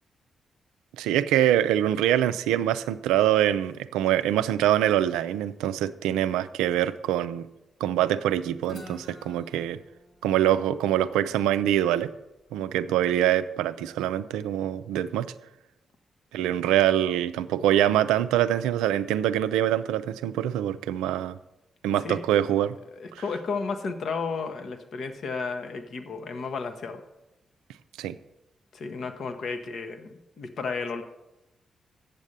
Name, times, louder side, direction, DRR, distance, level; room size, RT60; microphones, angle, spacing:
voice 1, 1.0-7.5 7.8-9.8 10.2-12.1 12.5-15.3 16.3-21.4 21.8-22.8 28.0-28.1, right 11 dB, 85° right, 13 dB, 0.4 m, -24 dB
Guitar, 8.6-12.4, left 2 dB, 45° left, 1.8 m, -50 dB
voice 2, 23.0-27.0 28.7-31.0, left 4 dB, 65° left, 7 dB, 1.0 m, -33 dB
8.2 x 7.3 x 6.5 m, 0.93 s
supercardioid pair, 45°, 0 cm